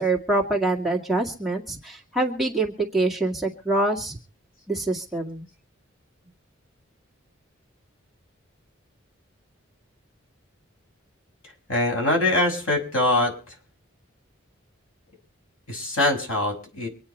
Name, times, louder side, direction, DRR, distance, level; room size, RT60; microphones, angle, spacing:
voice 1, 0.0-4.2 4.7-5.5, right 2 dB, ahead, -2 dB, 2.0 m, -25 dB
voice 2, 11.7-13.5 15.7-16.9, left 2 dB, 85° left, 2 dB, 6.2 m, -23 dB
25.0 x 9.5 x 4.3 m, 0.38 s
head